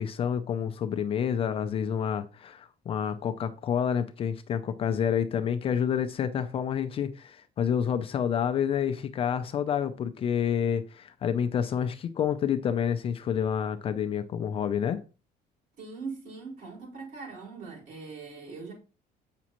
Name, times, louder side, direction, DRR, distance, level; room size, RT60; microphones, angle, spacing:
voice 1, 0.0-15.0, left 8 dB, 35° left, 0.5 m, -28 dB
voice 2, 15.8-18.7, right 4 dB, 50° right, 4.7 m, -41 dB
8.2 x 6.1 x 2.9 m
cardioid pair, 175°, 17 cm